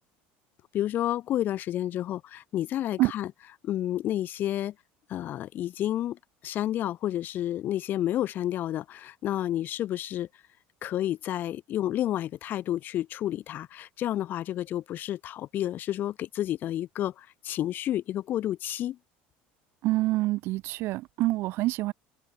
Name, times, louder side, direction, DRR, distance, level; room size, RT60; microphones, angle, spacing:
voice 1, 0.7-3.3 3.6-4.7 5.1-10.3 10.8-19.0, left 12 dB, 45° left, 0.4 m, -30 dB
voice 2, 19.8-21.9, right 18 dB, 60° right, 1.2 m, -26 dB
supercardioid pair, 125°, 5 cm